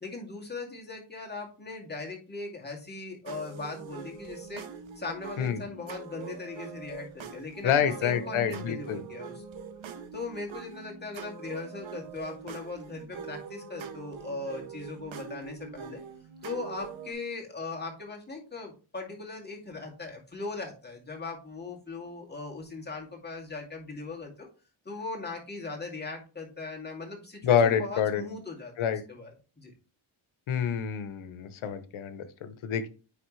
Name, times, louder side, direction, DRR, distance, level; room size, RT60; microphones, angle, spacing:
voice 1, 0.0-4.6 5.0-9.4 10.1-16.0 16.4-24.5 24.9-29.3 29.6-29.7, left 3 dB, 20° left, -1 dB, 2.2 m, -39 dB
sound 1, 3.3-17.1, right 6 dB, 70° right, 0.9 m, -43 dB
voice 2, 7.6-9.0 27.4-28.2 28.8-29.0 30.5-32.9, left 8 dB, 80° left, 11 dB, 1.0 m, -27 dB
9.4 x 3.4 x 3.2 m, 0.35 s
cardioid pair, 95°, 48 cm